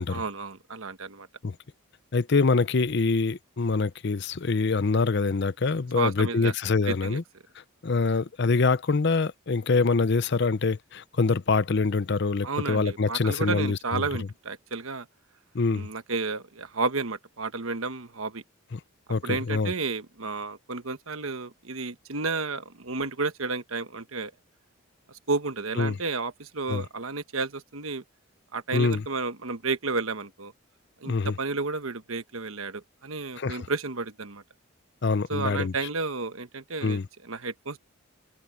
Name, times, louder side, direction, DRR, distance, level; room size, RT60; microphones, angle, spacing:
voice 1, 0.1-1.3 5.9-6.5 6.9-7.2 12.4-15.1 15.7-18.4 19.2-24.3 25.1-28.0 28.5-30.5 31.0-34.4 35.3-37.8, right 3 dB, 75° right, 1.3 m, -32 dB
voice 2, 2.1-7.2 7.8-14.0 15.5-15.9 18.7-18.8 19.1-19.7 25.8-26.0 26.7-26.8 28.7-29.0 31.0-31.3 33.4-33.7 35.0-35.7 36.8-37.1, left 4 dB, 50° left, 0.6 m, -25 dB
head